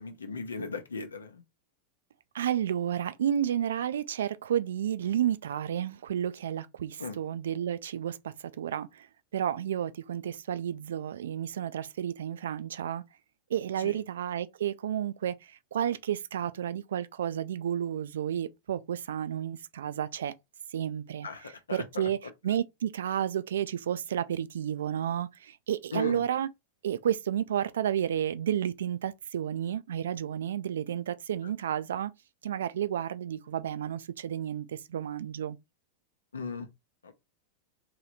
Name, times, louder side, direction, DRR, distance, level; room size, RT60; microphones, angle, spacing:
voice 1, 0.0-1.4 7.0-7.2 13.8-14.0 21.2-21.8 25.9-26.2 31.4-31.5 36.3-36.7 37.0-37.1, left 3 dB, 75° left, 0.7 m, -37 dB
voice 2, 2.3-9.1 9.3-13.0 13.5-20.3 20.7-21.3 21.7-22.2 22.4-26.5 26.8-32.1 32.4-35.6, right 10 dB, 65° right, 0.3 m, -31 dB
3.1 x 2.9 x 3.9 m
figure-of-eight pair, 90°, 0 cm